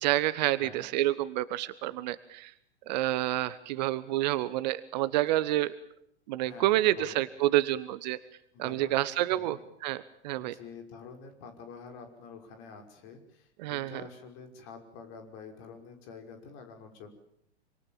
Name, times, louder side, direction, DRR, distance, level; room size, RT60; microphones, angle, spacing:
voice 1, 0.0-2.5 2.9-5.7 6.3-8.2 8.6-10.5 13.6-14.0, right 15 dB, 40° right, 16 dB, 1.1 m, -28 dB
voice 2, 6.4-7.3 8.5-9.6 10.4-17.1, left 5 dB, 35° left, 5 dB, 5.6 m, -48 dB
27.0 x 25.5 x 7.3 m, 0.71 s
figure-of-eight pair, 105°, 34 cm